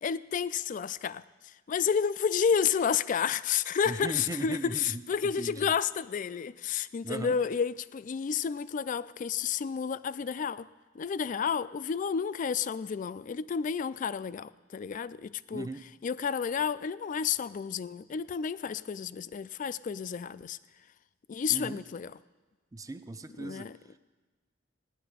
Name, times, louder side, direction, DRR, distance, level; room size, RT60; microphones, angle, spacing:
voice 1, 0.0-10.7 10.9-15.7 16.0-20.6 21.3-22.1 23.4-23.8, left 7 dB, 45° left, 0.3 m, -31 dB
voice 2, 3.9-5.7 7.0-7.4 15.5-15.8 21.5-21.8 22.7-23.7, right 2 dB, 20° right, 0.5 m, -38 dB
17.0 x 9.8 x 5.0 m
head